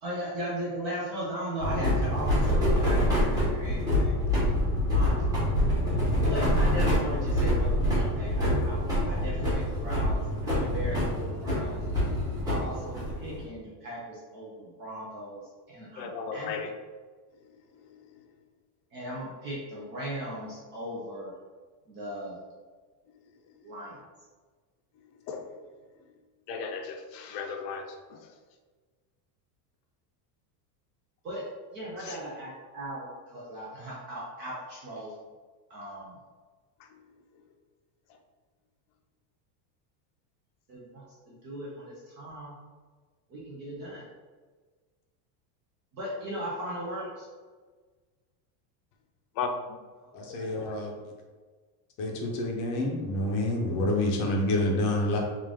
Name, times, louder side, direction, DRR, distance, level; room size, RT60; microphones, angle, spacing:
voice 1, 0.0-4.2 4.9-5.3 6.2-10.2 10.5-11.8 12.5-15.4 15.7-16.5 18.9-21.3 21.9-22.4 23.6-23.9 31.2-31.4 31.7-35.1 35.7-36.1 40.7-42.5 43.3-44.0 45.9-47.3 50.2-50.5, equal, 25° right, -6 dB, 0.3 m, -37 dB
sound 1, 1.6-13.4, equal, 10° right, 0.8 m, -26 dB
voice 2, 16.0-16.7 25.3-25.5 26.5-28.2 32.0-32.2 49.4-49.8 50.5-50.7, left 5 dB, 80° left, 5 dB, 0.7 m, -35 dB
voice 3, 50.1-50.9 52.0-55.2, left 1 dB, 40° left, 1 dB, 0.6 m, -28 dB
3.7 x 2.4 x 3.3 m, 1.4 s
cardioid pair, 165°, 49 cm